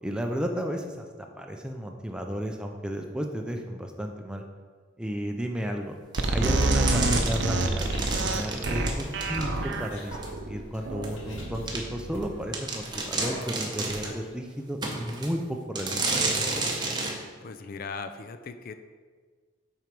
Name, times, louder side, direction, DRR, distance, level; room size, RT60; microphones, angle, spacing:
voice 1, 0.0-4.4 5.0-6.0 6.3-16.2, equal, 5° right, 3 dB, 0.5 m, -33 dB
sound 1, 6.1-9.8 10.2-10.3 11.0-11.1 11.7-11.8 12.2-12.3 12.5-14.2 14.8-15.3 15.8-17.2, right 3 dB, 20° right, 0.9 m, -31 dB
sound 2, 6.2-12.6, right 2 dB, 60° right, 0.6 m, -27 dB
sound 3, 7.9-14.1, equal, 75° left, 2.4 m, -45 dB
voice 2, 17.4-18.7, left 4 dB, 45° left, 9 dB, 0.4 m, -38 dB
7.7 x 4.6 x 5.2 m, 1.5 s
head